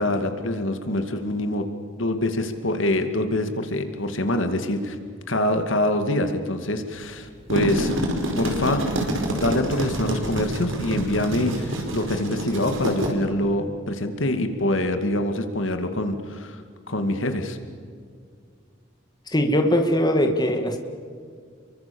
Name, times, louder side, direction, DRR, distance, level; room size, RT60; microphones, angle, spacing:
voice 1, 0.0-1.6 2.0-5.0 5.3-8.0 8.4-8.8 9.3-16.6 16.9-17.6, left 1 dB, 75° left, 7 dB, 2.4 m, -25 dB
sound 1, 7.3-13.1, right 1 dB, 75° right, 4.9 m, -27 dB
voice 2, 19.3-20.8, equal, 20° left, 5 dB, 2.1 m, -21 dB
29.5 x 23.5 x 7.1 m, 2.1 s
head